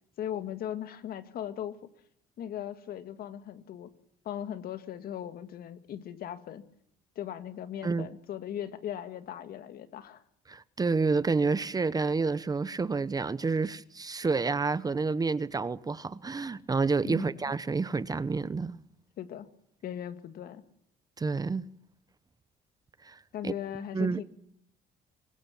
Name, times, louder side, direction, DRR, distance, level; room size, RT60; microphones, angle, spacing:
voice 1, 0.2-1.8 2.4-3.9 4.2-6.6 7.2-10.2 17.0-17.4 19.2-19.5 19.8-20.6 23.3-24.2, left 10 dB, 60° left, 2.0 m, -38 dB
voice 2, 10.5-18.8 21.2-21.6 23.0-23.5 23.9-24.2, right 4 dB, 20° right, 0.9 m, -29 dB
24.0 x 20.5 x 7.2 m
cardioid pair, 110°, 17 cm